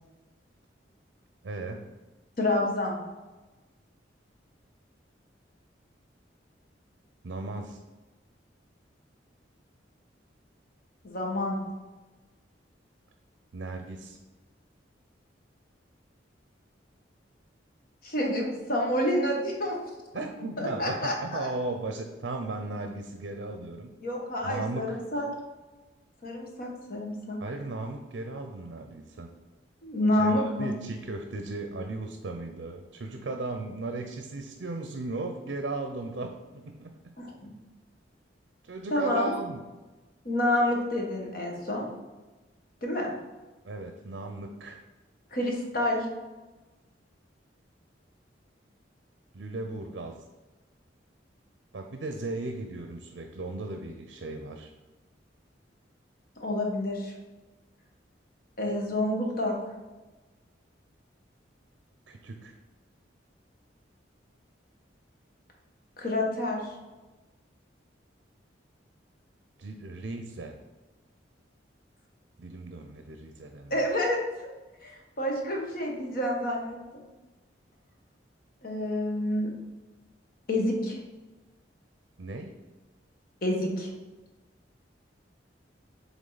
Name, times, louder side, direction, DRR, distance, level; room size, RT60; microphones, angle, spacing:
voice 1, 1.4-1.9 7.2-7.8 13.5-14.2 20.1-23.9 24.4-25.0 27.4-29.3 30.2-36.9 38.6-39.6 43.6-44.8 49.3-50.2 51.7-54.7 62.1-62.6 69.6-70.6 72.4-73.9 82.2-82.6, right 2 dB, 65° right, 5 dB, 0.5 m, -36 dB
voice 2, 2.4-3.0 11.0-11.6 18.0-19.8 20.6-21.5 24.0-25.3 26.2-27.4 29.8-30.7 37.2-37.3 38.9-39.3 40.2-41.9 42.8-43.1 45.3-46.0 56.4-57.1 58.6-59.5 66.0-66.6 73.7-74.5 74.8-77.0 78.6-79.5 80.5-81.0 83.4-83.9, left 1 dB, 50° left, 0 dB, 1.2 m, -28 dB
7.3 x 3.6 x 3.9 m, 1.2 s
head